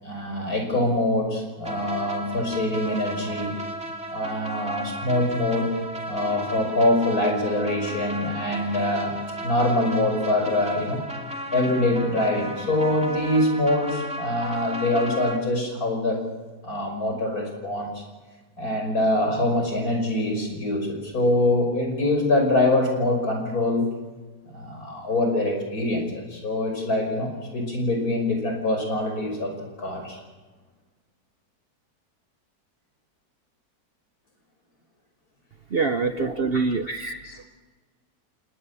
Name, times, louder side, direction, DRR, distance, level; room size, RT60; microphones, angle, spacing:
voice 1, 0.0-3.6 4.1-5.7 6.1-11.0 11.5-16.2 16.6-18.0 18.6-23.9 24.5-29.5 29.8-30.2 36.1-36.3 37.0-37.4, left 1 dB, 65° left, 3 dB, 6.2 m, -24 dB
sound 1, 1.6-15.4, equal, 5° right, 2.6 m, -35 dB
voice 2, 35.7-36.9, right 4 dB, 45° right, 9 dB, 0.9 m, -24 dB
30.0 x 18.5 x 7.0 m, 1.3 s
omnidirectional pair, 1.7 m